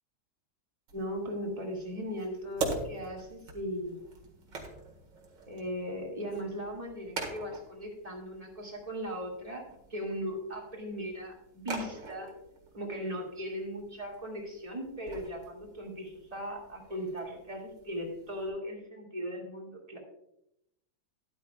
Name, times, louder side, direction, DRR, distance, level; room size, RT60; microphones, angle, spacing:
voice 1, 0.9-4.0 5.5-9.6 9.9-12.3 12.7-20.0, equal, 20° right, -1 dB, 2.3 m, -38 dB
sound 1, 0.9-18.5, right 3 dB, 65° right, 2.5 m, -44 dB
12.5 x 11.5 x 2.4 m, 0.80 s
omnidirectional pair, 2.1 m